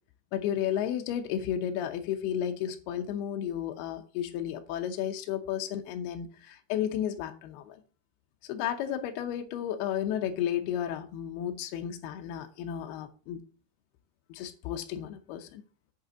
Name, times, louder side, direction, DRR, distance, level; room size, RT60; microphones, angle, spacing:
voice 1, 0.3-7.8 8.4-13.4 14.3-15.6, left 10 dB, 75° left, 2.4 m, -33 dB
7.8 x 5.4 x 7.2 m
omnidirectional pair, 5.3 m